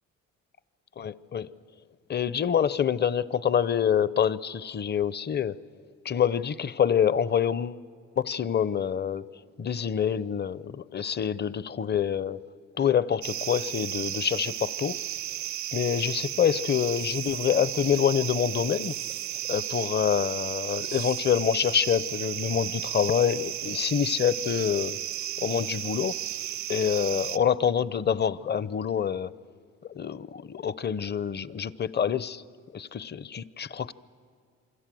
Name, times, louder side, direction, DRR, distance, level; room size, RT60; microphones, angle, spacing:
voice 1, 1.0-1.5 2.1-5.6 6.0-7.8 8.2-9.3 9.6-12.4 12.8-15.0 15.7-19.0 19.5-25.0 25.4-26.1 26.7-29.3 29.8-32.4 32.7-33.9, left 8 dB, 35° left, 18 dB, 0.7 m, -26 dB
sound 1, 13.2-27.4, right 12 dB, 70° right, 0.7 m, -34 dB
28.0 x 25.0 x 7.7 m, 2.2 s
cardioid pair, 90°, 30 cm